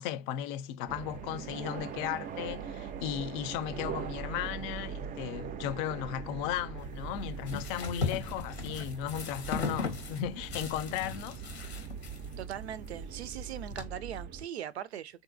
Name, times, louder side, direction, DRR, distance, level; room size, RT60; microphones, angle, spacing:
voice 1, 0.0-11.9, left 10 dB, 50° left, 0.5 m, -36 dB
sound 1, 0.9-14.5, right 7 dB, 25° right, 0.4 m, -41 dB
sound 2, 6.8-13.8, left 4 dB, 85° left, 1.0 m, -38 dB
voice 2, 12.4-15.2, right 10 dB, 85° right, 0.5 m, -40 dB
3.6 x 2.6 x 2.5 m
hypercardioid pair, 80°, 32 cm